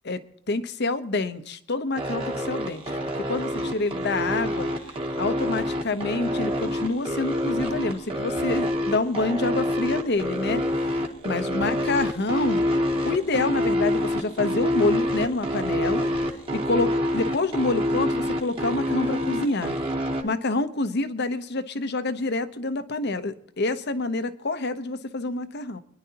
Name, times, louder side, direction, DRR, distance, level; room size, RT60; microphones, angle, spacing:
voice 1, 0.5-4.7 5.2-12.6 13.0-16.1 16.5-19.7 20.2-25.8, left 3 dB, 55° left, 11 dB, 1.0 m, -27 dB
sound 1, 2.0-20.2, left 1 dB, 30° right, 1.8 m, -26 dB
25.5 x 10.5 x 2.9 m, 0.71 s
head